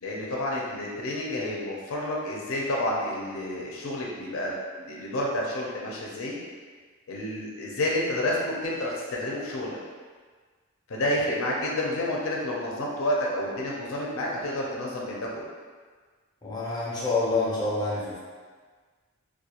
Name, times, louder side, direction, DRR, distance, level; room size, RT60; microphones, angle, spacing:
voice 1, 0.0-6.4 7.1-9.8 10.9-15.5, left 1 dB, 70° left, -3 dB, 0.5 m, -30 dB
voice 2, 16.4-18.2, left 3 dB, 20° left, -7 dB, 0.6 m, -27 dB
2.3 x 2.2 x 2.9 m, 1.5 s
head